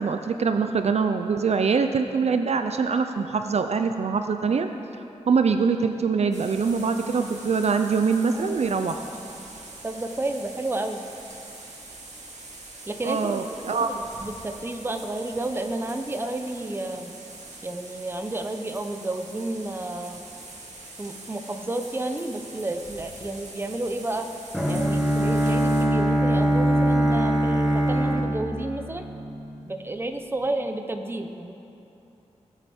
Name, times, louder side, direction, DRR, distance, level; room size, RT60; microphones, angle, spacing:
voice 1, 0.0-4.7 5.3-9.0 13.1-13.9, right 5 dB, 60° right, 7 dB, 0.5 m, -23 dB
sound 1, 6.3-25.8, right 2 dB, 75° right, 2.1 m, -43 dB
voice 2, 8.3-9.2 9.8-11.0 12.9-13.5 13.7-17.1 17.6-20.2 21.0-24.3 24.7-29.0 29.7-31.5, right 2 dB, 20° right, 6 dB, 0.8 m, -31 dB
Bowed string instrument, 24.5-29.5, right 1 dB, ahead, 1.4 m, -22 dB
19.5 x 8.1 x 4.3 m, 2.9 s
wide cardioid pair, 130°, 12 cm